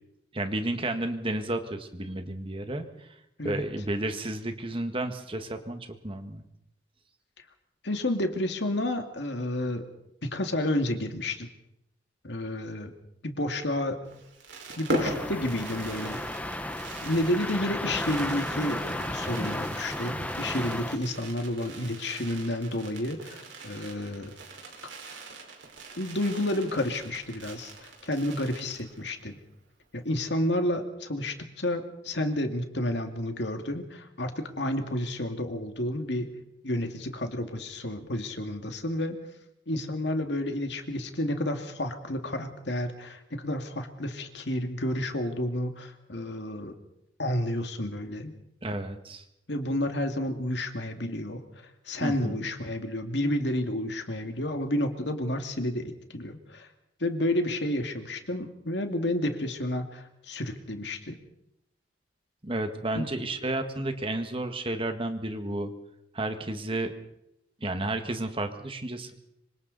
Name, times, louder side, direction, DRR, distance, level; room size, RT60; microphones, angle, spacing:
voice 1, 0.3-3.2 3.4-6.4 48.6-49.2 52.0-52.4 62.4-65.7 66.1-66.9 67.6-69.2, right 1 dB, 30° right, 7 dB, 1.8 m, -32 dB
voice 2, 7.8-9.9 10.2-11.5 12.2-12.9 13.2-14.1 14.8-16.2 17.0-24.3 26.0-29.4 29.9-36.3 36.6-39.2 39.7-46.7 47.2-48.3 49.5-51.4 51.9-56.7 57.0-61.2 62.9-63.1, left 1 dB, 65° left, 5 dB, 2.3 m, -30 dB
Fireworks, 14.1-29.2 29.5-29.6 29.8-30.1, right 2 dB, 75° right, 5.2 m, -41 dB
sound 1, 14.9-21.0, left 1 dB, 10° left, 1.0 m, -34 dB
26.5 x 25.5 x 4.2 m, 0.81 s
head